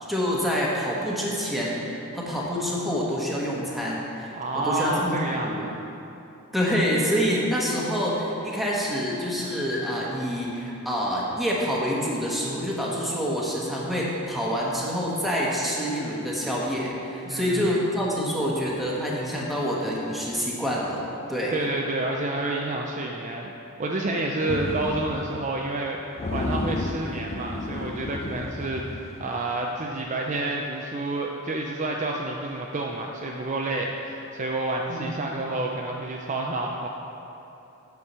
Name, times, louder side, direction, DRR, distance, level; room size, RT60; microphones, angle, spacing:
voice 1, 0.1-5.2 5.4-5.7 6.5-21.0 21.3-21.5 34.9-35.1, equal, ahead, -5 dB, 1.3 m, -27 dB
voice 2, 4.4-5.8 17.2-17.8 21.5-23.5 23.8-26.0 26.3-36.9, right 2 dB, 35° right, 0 dB, 0.5 m, -29 dB
sound 1, 24.5-25.5 25.8-25.9 26.2-29.6, left 2 dB, 30° left, 0.4 m, -32 dB
8.6 x 4.7 x 6.7 m, 2.8 s
head